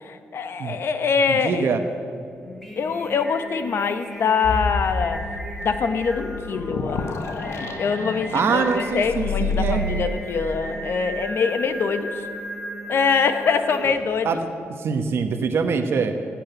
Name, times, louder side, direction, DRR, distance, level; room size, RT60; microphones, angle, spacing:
voice 1, 0.0-1.7 2.8-5.2 5.6-7.1 7.4-12.2 12.9-14.3, left 5 dB, 60° left, 9 dB, 1.1 m, -24 dB
voice 2, 1.3-1.8 8.3-9.8 14.2-14.4 14.8-16.2, right 5 dB, 65° right, 6 dB, 1.0 m, -23 dB
Singing, 2.4-14.1, right 1 dB, 5° left, 2.3 m, -36 dB
sound 1, 4.4-10.1, left 3 dB, 80° left, 1.3 m, -29 dB
16.0 x 8.8 x 9.2 m, 2.4 s
wide cardioid pair, 130°, 5 cm